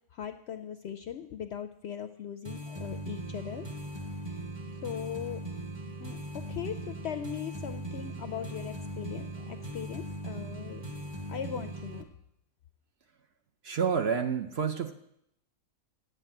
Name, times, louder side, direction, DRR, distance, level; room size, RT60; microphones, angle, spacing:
voice 1, 0.1-3.7 4.8-5.4 6.0-10.8 11.3-12.0, left 9 dB, 70° left, 9 dB, 0.6 m, -39 dB
sound 1, 2.4-12.0, right 1 dB, 20° right, 0.9 m, -39 dB
voice 2, 13.6-14.9, right 6 dB, 60° right, 5 dB, 0.7 m, -29 dB
7.9 x 7.7 x 8.8 m, 0.77 s
omnidirectional pair, 1.5 m